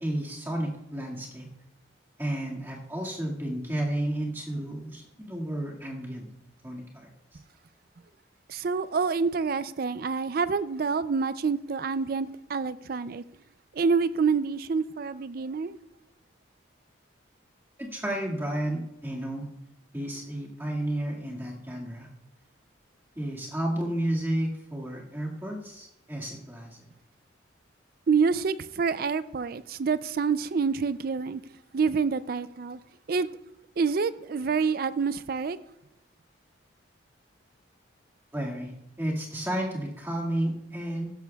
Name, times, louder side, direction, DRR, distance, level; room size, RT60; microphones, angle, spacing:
voice 1, 0.0-1.5 2.2-6.3 6.6-7.1 17.8-19.5 19.9-22.1 23.2-26.8 38.3-38.7 39.0-41.1, right 1 dB, 10° right, 1.9 m, -32 dB
voice 2, 8.5-13.2 13.7-15.8 28.1-31.4 31.7-32.8 33.1-33.3 33.8-35.6, right 5 dB, 50° right, 0.4 m, -27 dB
15.5 x 12.5 x 2.3 m
head